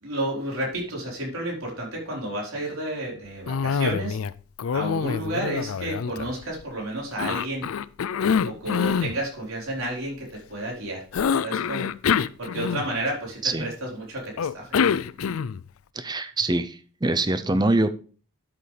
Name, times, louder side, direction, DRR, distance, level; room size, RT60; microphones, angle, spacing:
voice 1, 0.0-4.2 4.7-7.7 8.4-11.0 11.4-11.9 12.4-14.8, right 1 dB, 80° right, -2 dB, 4.3 m, -31 dB
Cough, 3.5-4.3 4.6-6.6 7.2-9.2 11.1-13.1 14.4-15.7, left 6 dB, 80° left, 0.4 m, -25 dB
voice 2, 16.0-17.9, right 2 dB, 20° right, 11 dB, 0.5 m, -24 dB
12.5 x 7.8 x 3.3 m, 0.39 s
head